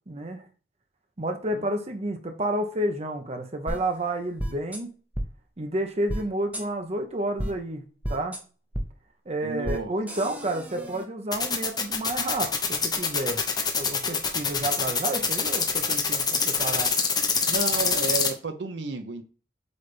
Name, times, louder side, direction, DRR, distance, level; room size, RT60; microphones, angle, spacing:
voice 1, 0.1-0.4 1.2-4.9 5.6-7.8 8.1-8.4 9.3-13.4 13.7-16.9, right 1 dB, 35° right, 5 dB, 0.9 m, -30 dB
sound 1, 3.7-3.8 4.4-4.8 5.1-5.3 6.1-6.2 6.5-6.6 7.4-7.5 8.0-8.4 8.7-8.8 9.6-9.8 10.1-11.0, equal, 10° right, 1.0 m, -31 dB
voice 2, 9.4-9.9 10.8-10.9 17.5-19.2, right 3 dB, 75° right, 8 dB, 0.8 m, -31 dB
sound 2, 11.3-18.3, left 6 dB, 25° left, 0.9 m, -24 dB
8.0 x 3.5 x 3.4 m, 0.37 s
head